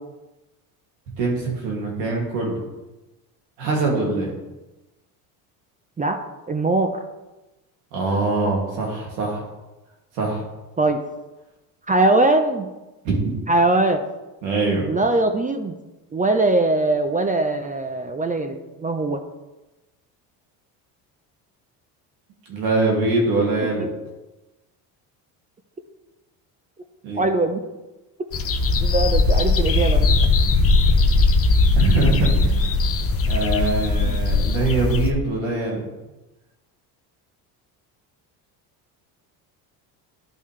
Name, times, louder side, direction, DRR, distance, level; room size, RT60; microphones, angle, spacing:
voice 1, 1.2-2.6 3.6-4.3 7.9-9.4 10.2-10.4 13.0-13.4 14.4-14.9 22.5-23.9 27.0-27.2 31.7-32.7 33.3-35.8, right 3 dB, 90° right, -2 dB, 2.5 m, -23 dB
voice 2, 6.5-6.9 10.8-11.0 11.9-12.7 13.5-14.0 14.9-15.7 16.1-19.2 27.2-27.6 28.8-30.1 34.0-34.2, right 2 dB, 15° right, 6 dB, 0.6 m, -21 dB
sound 1, 28.3-35.1, left 3 dB, 30° left, 0.8 m, -19 dB
10.5 x 5.4 x 3.2 m, 1.1 s
supercardioid pair, 95°, 46 cm